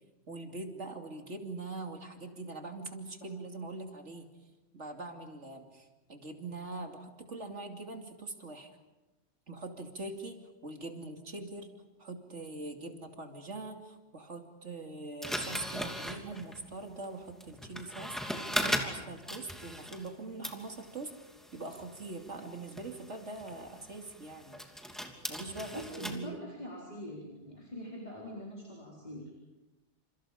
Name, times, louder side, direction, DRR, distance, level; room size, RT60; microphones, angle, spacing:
voice 1, 0.3-4.3 4.7-8.7 9.5-11.7 12.0-21.1 21.5-24.6 25.3-26.4, right 2 dB, 75° right, 3 dB, 3.0 m, -43 dB
sound 1, 15.2-20.2 20.4-26.2, equal, ahead, 2.9 m, -39 dB
voice 2, 25.7-29.2, left 1 dB, 35° left, -3 dB, 4.5 m, -43 dB
29.5 x 28.5 x 5.1 m, 1.1 s
omnidirectional pair, 1.2 m